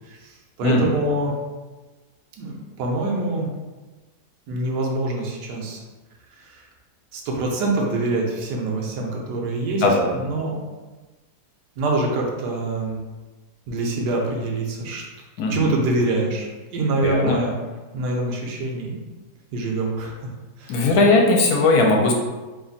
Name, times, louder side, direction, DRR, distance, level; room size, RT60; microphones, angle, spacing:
voice 1, 0.1-1.3 2.4-3.5 4.5-5.8 6.4-6.6 7.1-9.8 10.2-10.6 11.8-13.0 13.7-15.0 15.5-17.5 17.9-19.0 19.5-20.3 20.6-20.8, right 2 dB, 85° right, 0 dB, 1.3 m, -25 dB
voice 2, 0.6-0.9 9.8-10.2 15.4-15.7 17.0-17.4 20.7-22.1, left 2 dB, 70° left, 0 dB, 1.1 m, -18 dB
3.1 x 2.4 x 3.9 m, 1.2 s
omnidirectional pair, 1.8 m